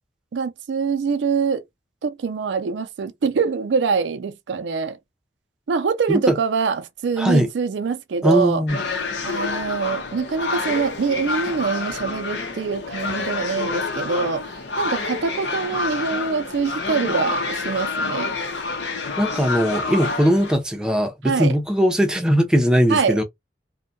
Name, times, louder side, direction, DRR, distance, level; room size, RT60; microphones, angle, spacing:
voice 1, 0.3-1.6 2.0-5.0 5.7-8.6 9.2-14.4 14.8-18.3 21.2-21.5 22.9-23.2, right 5 dB, 85° right, 0.4 m, -24 dB
voice 2, 7.2-7.5 8.2-8.8 19.2-23.2, equal, 5° right, 0.5 m, -19 dB
sound 1, 8.7-20.5, left 3 dB, 75° left, 0.7 m, -28 dB
2.6 x 2.2 x 2.6 m
head